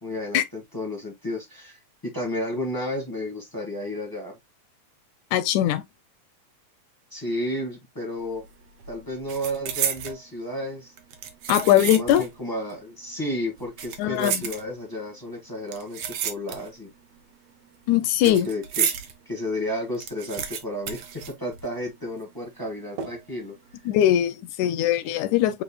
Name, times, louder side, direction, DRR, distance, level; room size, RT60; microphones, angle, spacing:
voice 1, 0.0-4.3 7.1-8.4 8.9-10.9 11.8-16.9 18.2-18.9 19.2-23.5, left 1 dB, 20° left, 0.6 m, -32 dB
voice 2, 5.3-5.8 11.5-12.2 14.0-14.4 17.9-18.5 23.9-25.6, left 12 dB, 80° left, 1.7 m, -21 dB
sound 1, 8.2-8.5 8.8-10.2 11.0-12.4 12.7-12.8 13.6-15.0 15.7-16.9 17.2-19.1 19.5-19.6 19.8-21.9 22.2-22.3 23.0-23.4 23.8-24.0, right 8 dB, 75° right, 1.4 m, -31 dB
8.1 x 2.8 x 2.2 m
omnidirectional pair, 3.7 m